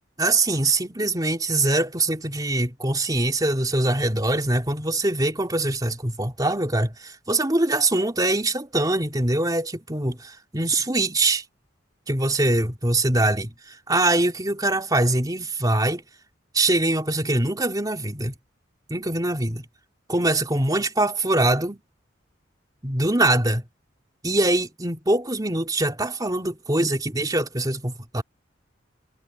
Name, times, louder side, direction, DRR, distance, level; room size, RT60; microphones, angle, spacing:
voice 1, 0.2-11.4 12.1-13.5 13.9-16.0 16.5-18.4 18.9-19.6 20.1-21.8 22.8-23.6 24.2-28.2, right 2 dB, 20° right, 3.3 m, -23 dB
head